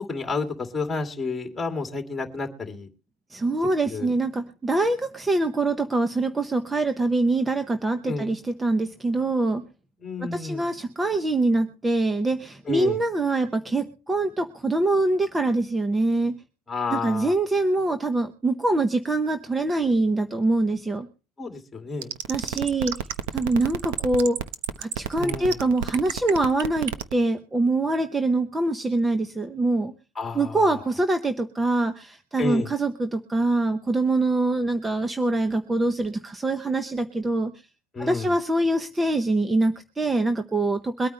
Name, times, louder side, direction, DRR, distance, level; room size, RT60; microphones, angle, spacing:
voice 1, 0.0-2.9 3.9-4.1 8.1-8.3 10.0-10.7 12.7-13.0 16.7-17.3 21.4-22.1 25.2-25.6 30.2-30.8 32.4-32.7 37.9-38.3, left 4 dB, 10° left, 4 dB, 2.4 m, -30 dB
voice 2, 3.3-9.6 10.2-16.3 16.9-21.1 22.3-23.0 23.3-24.4 24.8-29.9 30.3-37.5 38.0-41.1, right 2 dB, 10° right, 8 dB, 0.8 m, -24 dB
sound 1, 22.0-27.1, right 11 dB, 65° right, 1.0 m, -29 dB
23.0 x 9.2 x 3.2 m, 0.34 s
supercardioid pair, 155°, 0 cm